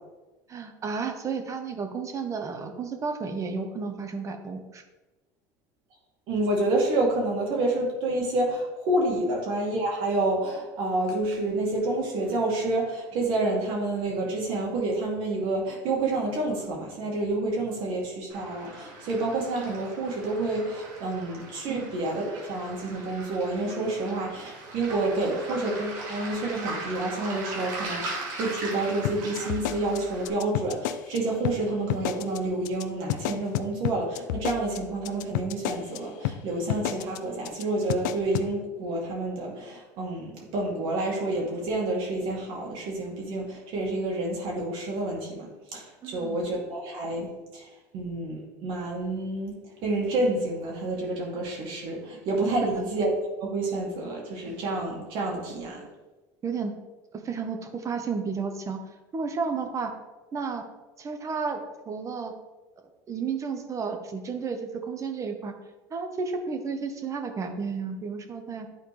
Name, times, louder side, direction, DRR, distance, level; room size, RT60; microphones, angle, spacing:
voice 1, 0.5-4.8 9.2-9.3 21.7-21.9 46.0-46.4 52.7-52.9 56.4-56.7 57.2-58.8 59.1-59.9 60.3-60.6 61.0-62.3 63.1-65.5 65.9-68.7, right 5 dB, 35° right, 5 dB, 1.1 m, -32 dB
voice 2, 6.3-47.6 47.9-49.5 49.8-53.1 53.4-55.8, right 2 dB, 65° right, -2 dB, 2.6 m, -29 dB
Waves surf, 18.3-30.3, right 2 dB, 80° right, 2.1 m, -39 dB
sound 1, 29.0-31.2 31.4-31.6 31.9-32.4 32.6-32.8 33.1-36.0 36.2-36.4 36.7-37.2 37.4-37.6 37.9-38.5, left 13 dB, 80° left, 0.4 m, -30 dB
10.5 x 4.3 x 3.3 m, 1.1 s
supercardioid pair, 90°, 10 cm